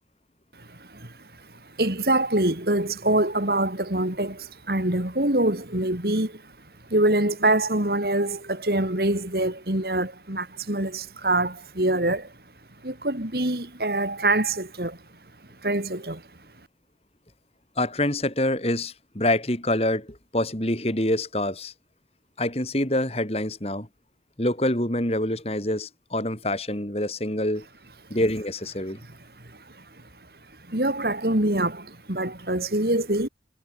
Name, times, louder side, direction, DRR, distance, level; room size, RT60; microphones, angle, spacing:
voice 1, 0.6-6.5 6.9-12.3 12.8-15.0 15.6-16.2 29.4-29.8 30.7-33.3, right 1 dB, 60° right, 3.4 m, -25 dB
voice 2, 17.8-21.7 22.4-23.9 24.4-27.7 28.1-29.0, left 1 dB, 35° left, 4.2 m, -26 dB
head